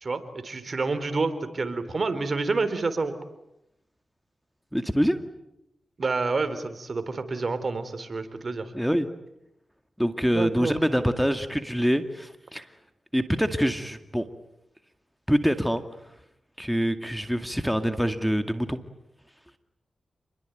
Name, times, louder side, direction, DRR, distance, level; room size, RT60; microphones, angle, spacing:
voice 1, 0.0-3.1 6.0-8.7 10.2-10.7, right 3 dB, 55° right, 11 dB, 3.8 m, -28 dB
voice 2, 4.7-5.2 8.7-9.1 10.0-12.7 13.1-14.3 15.3-15.8 16.6-18.8, equal, ahead, 8 dB, 2.2 m, -25 dB
29.0 x 22.0 x 9.3 m, 0.83 s
cardioid pair, 50°, 0 cm